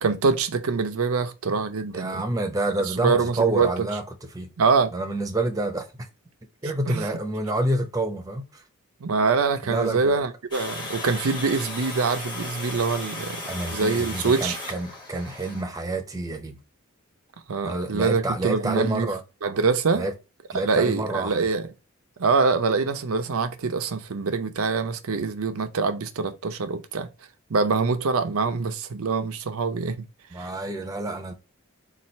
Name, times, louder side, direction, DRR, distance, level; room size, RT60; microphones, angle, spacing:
voice 1, 0.0-2.2 2.9-3.7 4.6-4.9 6.9-7.0 9.0-13.4 13.7-14.6 17.5-19.1 19.4-20.1 20.6-21.7 22.2-27.1 27.5-30.0 30.4-30.5, right 4 dB, 80° right, 0.6 m, -24 dB
voice 2, 1.9-4.5 4.9-6.1 6.6-8.6 9.6-10.2 13.4-16.6 17.6-19.2 19.9-20.1 20.5-21.4 30.3-31.3, right 2 dB, 15° right, 0.6 m, -28 dB
Water, 10.5-15.6, left 2 dB, 20° left, 1.0 m, -36 dB
4.1 x 2.4 x 4.3 m
head